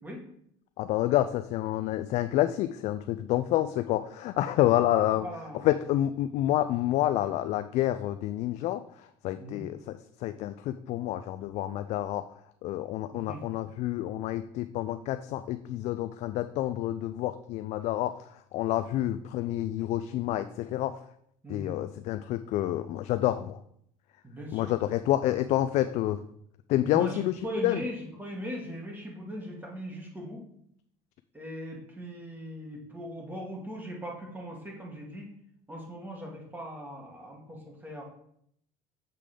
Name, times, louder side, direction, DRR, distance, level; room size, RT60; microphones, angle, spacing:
voice 1, 0.8-5.3 5.6-12.2 12.6-20.9 21.5-23.6 24.5-26.2 26.7-27.8, left 13 dB, 60° left, 10 dB, 0.4 m, -28 dB
voice 2, 5.2-5.7 9.4-9.6 13.1-13.4 19.0-19.2 21.4-21.7 24.2-24.7 26.8-30.4 31.3-35.3 35.7-38.0, equal, 15° right, -1 dB, 1.9 m, -39 dB
6.7 x 3.7 x 5.0 m, 0.70 s
supercardioid pair, 100°, 13 cm